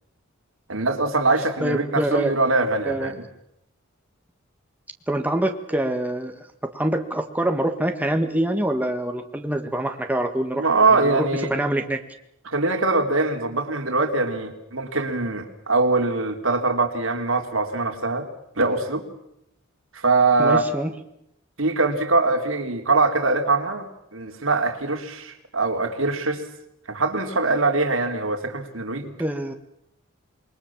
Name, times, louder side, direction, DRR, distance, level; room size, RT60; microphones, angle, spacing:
voice 1, 0.7-3.2 10.6-11.5 12.4-18.3 18.6-19.0 19.9-20.7 21.6-23.9 24.1-26.4 26.9-29.1, right 3 dB, 70° right, 4 dB, 3.3 m, -22 dB
voice 2, 1.6-2.3 2.8-3.1 5.1-6.5 6.7-12.0 20.4-20.9 29.2-29.5, right 1 dB, 10° right, 5 dB, 1.6 m, -25 dB
27.5 x 22.0 x 7.3 m, 0.79 s
head